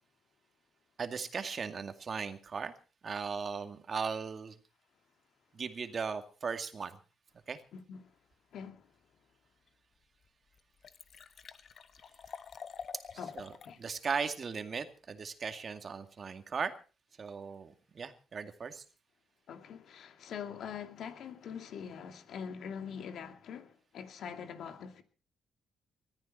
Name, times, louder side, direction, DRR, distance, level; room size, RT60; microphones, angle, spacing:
voice 1, 1.0-2.7 3.0-4.6 5.5-7.0 7.5-7.6 13.1-16.7 17.2-18.8, right 5 dB, 45° right, 2.2 m, -38 dB
voice 2, 8.5-8.9 13.2-13.3 13.6-13.8 19.5-25.0, left 7 dB, 70° left, 2.3 m, -43 dB
Liquid, 9.7-9.8 10.2-10.3 10.5-13.8 14.1-14.2, left 6 dB, 50° left, 1.3 m, -47 dB
20.5 x 14.0 x 4.3 m
cardioid pair, 90°, 0 cm